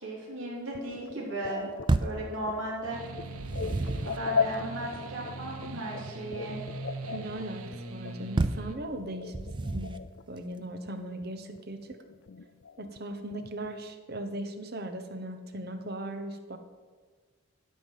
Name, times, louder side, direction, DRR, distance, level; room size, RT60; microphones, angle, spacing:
voice 1, 0.0-1.7 2.0-3.0 4.0-6.6, right 1 dB, 65° right, -4 dB, 3.6 m, -36 dB
sound 1, 0.7-10.2 10.5-11.3 11.5-13.8, left 6 dB, 55° left, 0.5 m, -38 dB
sound 2, 1.9-2.3 3.2-4.2 8.4-8.7 9.3-10.1, right 2 dB, 20° right, 0.3 m, -29 dB
sound 3, 2.9-8.7, right 3 dB, 85° right, 0.8 m, -41 dB
voice 2, 7.1-9.9 10.3-12.0 12.8-16.6, right 1 dB, 45° right, 7 dB, 1.0 m, -38 dB
12.5 x 5.6 x 7.5 m, 1.5 s
head